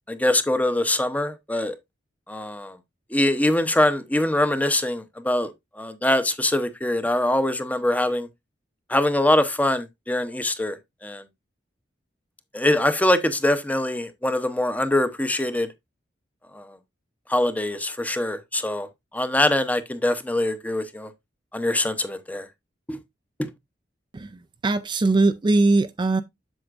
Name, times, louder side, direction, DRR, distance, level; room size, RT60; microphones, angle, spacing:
voice 1, 0.1-1.8 2.3-2.8 3.1-8.3 8.9-10.8 11.0-11.2 12.5-15.7 16.5-16.8 17.3-18.9 19.1-21.1 21.5-22.5 22.9-23.0 23.4-23.5, left 1 dB, 10° left, 0.7 m, -23 dB
voice 2, 24.1-26.2, right 2 dB, 25° right, 0.4 m, -21 dB
7.9 x 7.1 x 2.5 m
head